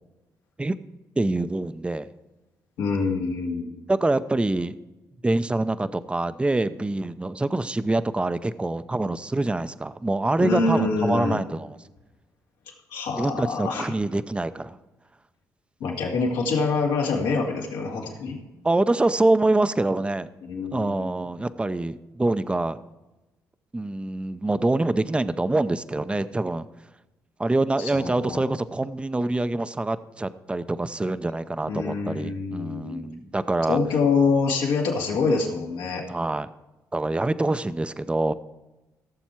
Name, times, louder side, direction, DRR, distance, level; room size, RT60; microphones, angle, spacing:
voice 1, 1.2-2.1 3.9-4.8 5.2-11.8 13.2-14.8 18.6-20.3 20.7-22.8 23.7-26.7 27.4-33.8 36.1-36.5 36.9-38.3, right 2 dB, 15° right, 13 dB, 0.6 m, -25 dB
voice 2, 2.8-3.7 10.4-11.4 12.7-13.9 15.8-18.4 20.4-21.3 27.8-28.4 31.7-33.0 33.7-36.0, left 4 dB, 85° left, -1 dB, 2.4 m, -25 dB
16.5 x 7.1 x 4.5 m, 1.1 s
supercardioid pair, 60°, 8 cm